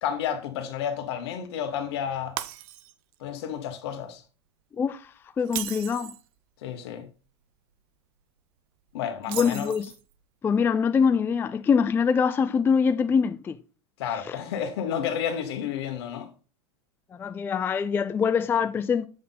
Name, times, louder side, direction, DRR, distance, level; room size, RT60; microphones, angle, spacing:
voice 1, 0.0-2.3 3.2-4.2 6.6-7.1 8.9-9.7 14.0-16.3, left 8 dB, 70° left, 1.4 m, -31 dB
Shatter, 2.4-3.2 3.6-3.8 5.4-6.3 9.2-10.1, right 14 dB, 60° right, 0.6 m, -36 dB
voice 2, 4.8-5.1 5.4-6.1 9.3-9.9 10.4-13.6 14.2-14.4 17.2-19.1, left 6 dB, 15° left, 0.3 m, -24 dB
7.7 x 3.6 x 4.0 m
hypercardioid pair, 110°, 14 cm